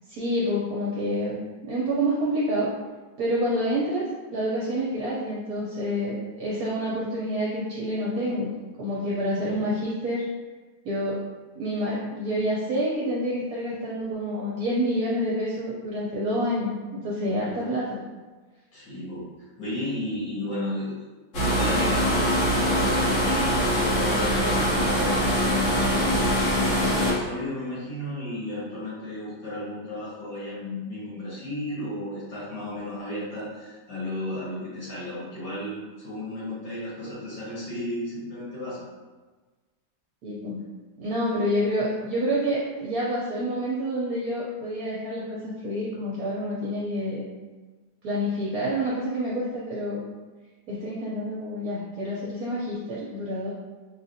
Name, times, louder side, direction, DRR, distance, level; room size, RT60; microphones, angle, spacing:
voice 1, 0.1-1.4 1.6-2.7 3.2-4.0 4.3-8.5 8.8-10.2 10.8-11.2 11.5-18.0 40.2-40.6 41.0-47.2 48.0-50.0 50.7-53.5, equal, 65° right, -6 dB, 1.0 m, -28 dB
voice 2, 18.7-19.3 19.6-20.9 21.4-22.0 22.6-38.9, left 1 dB, 70° left, -9 dB, 2.1 m, -34 dB
sound 1, 21.3-27.1, equal, 50° left, 1.2 m, -23 dB
4.9 x 2.4 x 2.7 m, 1.3 s
omnidirectional pair, 1.8 m